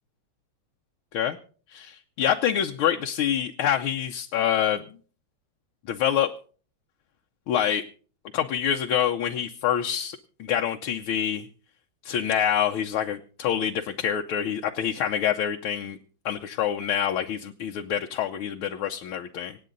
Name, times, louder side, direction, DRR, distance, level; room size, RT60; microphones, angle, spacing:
voice 1, 1.7-4.8 5.9-6.3 7.5-7.8 8.3-11.5 12.1-16.0 16.3-19.6, left 9 dB, 80° left, 3 dB, 1.7 m, -26 dB
26.0 x 9.1 x 4.0 m, 0.43 s
omnidirectional pair, 2.3 m